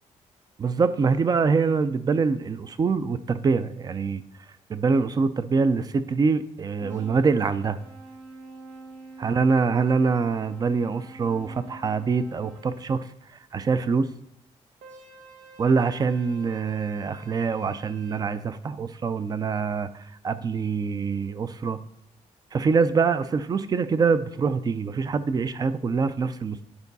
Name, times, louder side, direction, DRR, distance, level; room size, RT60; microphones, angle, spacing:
voice 1, 0.6-4.2 4.7-7.8 9.2-13.1 13.5-14.1 15.6-19.9 20.2-21.8 22.5-26.7, right 5 dB, 30° right, 13 dB, 0.4 m, -24 dB
sound 1, 6.8-12.9 14.8-18.2, right 3 dB, 80° right, 1.0 m, -47 dB
9.6 x 4.5 x 4.0 m, 0.81 s
cardioid pair, 115°, 13 cm